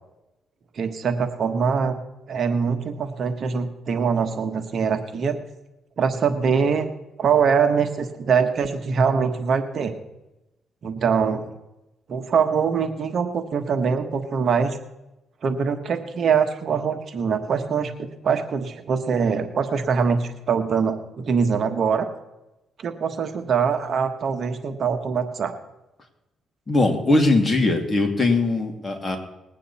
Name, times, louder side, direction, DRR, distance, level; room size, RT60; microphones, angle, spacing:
voice 1, 0.7-2.0 2.3-5.4 6.0-6.9 7.2-9.9 10.8-11.5 12.1-14.8 15.4-22.1 22.8-25.5, right 6 dB, 55° right, 7 dB, 1.3 m, -23 dB
voice 2, 26.7-29.2, left 2 dB, 20° left, 2 dB, 2.7 m, -20 dB
20.5 x 8.9 x 4.2 m, 0.95 s
cardioid pair, 90°, 0 cm